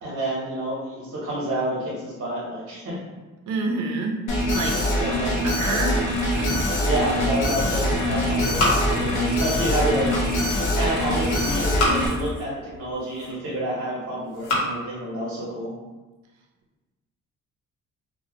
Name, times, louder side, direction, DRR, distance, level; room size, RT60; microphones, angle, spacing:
voice 1, 0.0-3.0 4.8-5.3 6.8-10.1 10.8-15.7, right 1 dB, 50° right, -6 dB, 0.8 m, -29 dB
voice 2, 3.5-4.2 4.5-4.8 5.4-6.0 6.4-6.6, right 3 dB, 75° right, 1 dB, 0.5 m, -27 dB
Alarm, 4.3-12.1, left 1 dB, 90° left, 0.7 m, -24 dB
Squeak, 5.3-12.9, left 2 dB, 30° left, 0.4 m, -35 dB
sound 1, 6.8-7.6 7.9-9.4 9.7-10.6 11.4-12.3 12.9-13.6 14.2-14.7, left 1 dB, 60° left, 0.9 m, -29 dB
2.1 x 2.0 x 2.9 m, 1.2 s
cardioid pair, 90°, 30 cm